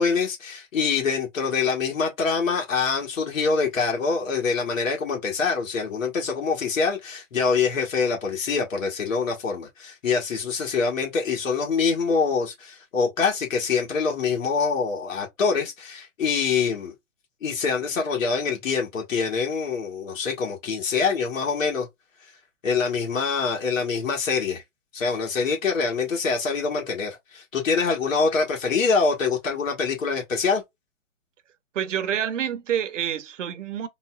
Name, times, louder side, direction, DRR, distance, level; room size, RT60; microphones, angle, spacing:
voice 1, 0.0-16.9 17.4-21.9 22.6-24.6 24.9-30.6, left 5 dB, 70° left, 1.5 m, -25 dB
voice 2, 31.7-33.9, right 9 dB, 65° right, 0.8 m, -27 dB
3.9 x 2.2 x 2.3 m
hypercardioid pair, 145°, 40 cm